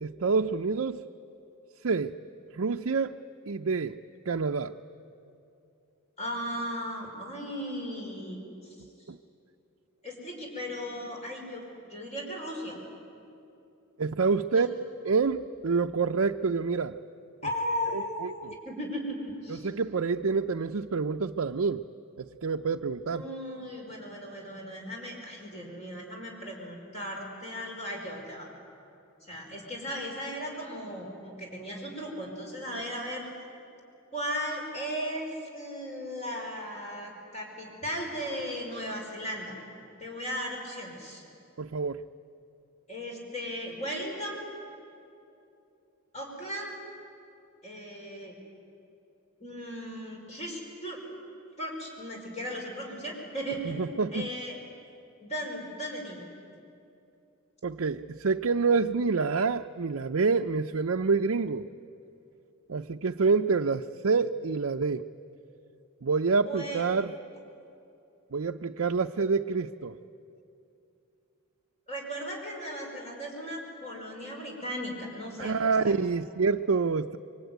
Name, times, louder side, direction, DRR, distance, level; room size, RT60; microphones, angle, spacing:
voice 1, 0.0-1.0 1.8-2.2 2.5-3.2 3.5-4.0 4.3-4.8 9.1-9.2 14.0-14.7 15.0-17.0 17.9-18.5 19.5-21.8 22.2-23.2 41.6-42.0 53.6-54.3 57.6-61.7 62.7-65.0 66.0-67.1 68.3-70.0 75.4-77.2, right 4 dB, 65° right, 4 dB, 0.5 m, -27 dB
voice 2, 6.2-8.8 10.0-11.6 11.9-12.8 14.5-14.6 17.4-19.7 23.1-28.5 29.2-33.2 34.1-39.5 40.0-41.2 42.9-44.4 46.1-46.7 47.6-48.4 49.4-51.0 51.6-54.6 55.2-56.3 66.4-66.9 71.9-76.0, equal, 30° left, 0 dB, 5.3 m, -36 dB
26.0 x 24.0 x 9.4 m, 2.7 s
head